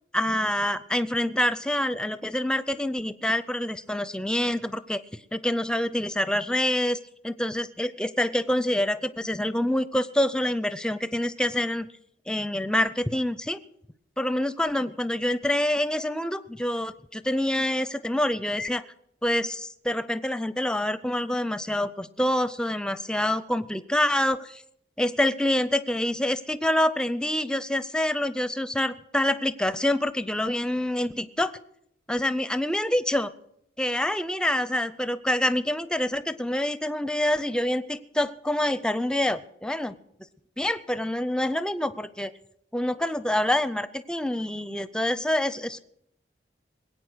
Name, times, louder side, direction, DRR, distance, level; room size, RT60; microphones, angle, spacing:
voice 1, 0.1-5.0 5.3-7.0 7.2-11.9 12.3-13.6 14.2-18.8 19.2-24.6 25.0-31.5 32.1-33.3 33.8-39.9 40.6-42.3 42.7-45.8, left 1 dB, 5° left, 13 dB, 0.5 m, -26 dB
21.0 x 8.7 x 6.2 m, 0.74 s
head